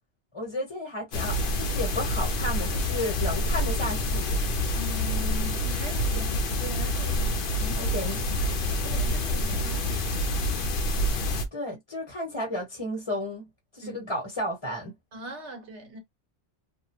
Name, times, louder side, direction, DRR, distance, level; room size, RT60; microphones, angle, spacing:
voice 1, 0.3-4.4 7.8-8.2 11.5-13.5 13.7-14.9, left 1 dB, 25° left, 1.1 m, -33 dB
sound 1, 1.1-11.5, left 1 dB, 55° left, 0.8 m, -27 dB
voice 2, 4.7-7.9 8.4-10.5 13.8-14.1 15.1-16.0, right 1 dB, 75° right, 1.4 m, -41 dB
2.8 x 2.1 x 2.9 m
omnidirectional pair, 1.2 m